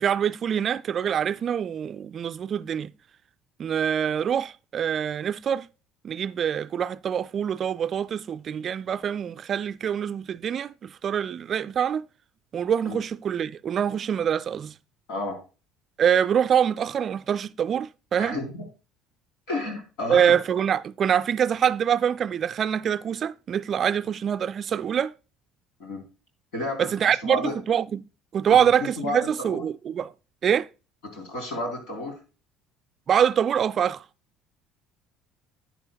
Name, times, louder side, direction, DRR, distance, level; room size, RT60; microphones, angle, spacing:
voice 1, 0.0-2.9 3.6-5.7 6.0-12.1 12.5-14.7 16.0-18.4 20.1-25.1 26.8-28.1 28.3-30.1 30.4-30.7 33.1-34.0, right 8 dB, 45° right, 0.3 m, -25 dB
voice 2, 18.1-18.6 19.5-20.4 25.8-26.0 26.5-26.9 27.2-27.5 28.5-28.7 29.0-29.2 29.5-29.6 31.1-32.2, left 2 dB, 75° left, 3.5 m, -31 dB
11.5 x 8.2 x 2.3 m
hypercardioid pair, 70°, 0 cm